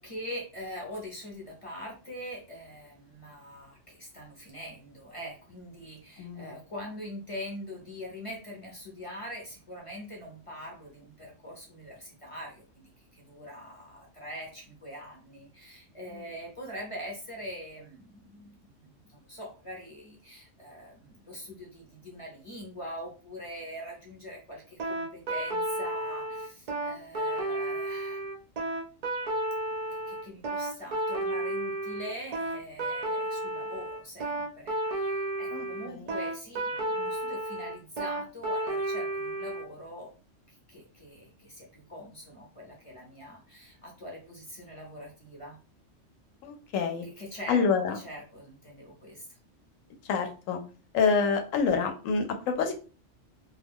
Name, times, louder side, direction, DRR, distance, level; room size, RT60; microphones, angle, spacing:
voice 1, 0.0-28.3 29.9-40.1 40.5-45.6 47.0-47.6 47.9-49.4, equal, 35° left, -1 dB, 0.6 m, -43 dB
voice 2, 6.2-6.5 35.5-36.1 46.4-47.1 47.5-48.0 50.0-50.6 50.9-52.7, left 5 dB, 85° left, 5 dB, 1.0 m, -27 dB
sound 1, 24.8-39.6, right 1 dB, 50° right, 0.4 m, -32 dB
2.3 x 2.2 x 3.5 m, 0.36 s
omnidirectional pair, 1.3 m